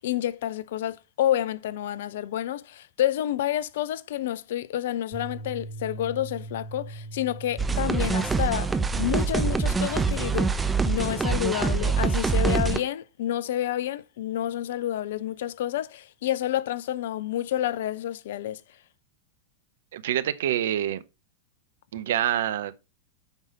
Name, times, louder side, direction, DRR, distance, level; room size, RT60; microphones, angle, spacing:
voice 1, 0.0-10.6 10.9-18.6, left 12 dB, 55° left, 0.6 m, -29 dB
sound 1, 5.1-11.4, right 2 dB, 90° right, 2.7 m, -42 dB
sound 2, 7.6-12.8, right 4 dB, 10° right, 0.8 m, -25 dB
voice 2, 19.9-21.0 21.9-22.7, right 11 dB, 60° right, 0.7 m, -26 dB
8.1 x 5.6 x 5.1 m
figure-of-eight pair, 90°, 0 cm